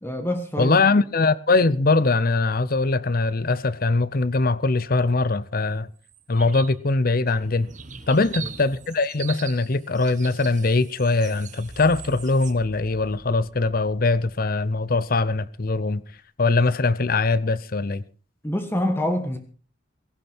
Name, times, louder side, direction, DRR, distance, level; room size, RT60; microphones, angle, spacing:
voice 1, 0.0-0.8 8.1-8.5 18.4-19.4, left 1 dB, 10° left, 1.5 m, -26 dB
voice 2, 0.6-5.9 6.3-7.7 8.1-16.0 16.4-18.0, left 3 dB, 45° left, 0.7 m, -22 dB
sound 1, 6.0-6.7 7.1-12.5, right 8 dB, 40° right, 1.3 m, -41 dB
sound 2, 11.6-16.2, equal, 70° left, 6.8 m, -48 dB
17.0 x 16.0 x 4.4 m
head